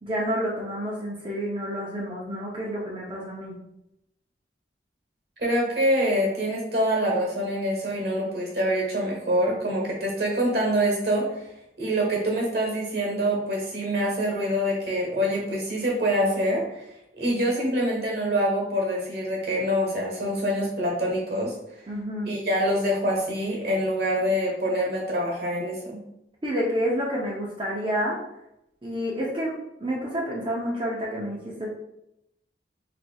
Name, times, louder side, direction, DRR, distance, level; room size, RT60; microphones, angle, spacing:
voice 1, 0.0-3.6 21.9-22.3 26.4-28.2 28.8-29.5 29.8-31.7, equal, 30° right, -4 dB, 0.6 m, -29 dB
voice 2, 5.4-11.5 11.8-16.9 17.2-21.5 22.3-26.0, equal, 60° right, -2 dB, 1.2 m, -25 dB
4.2 x 3.2 x 2.3 m, 0.84 s
head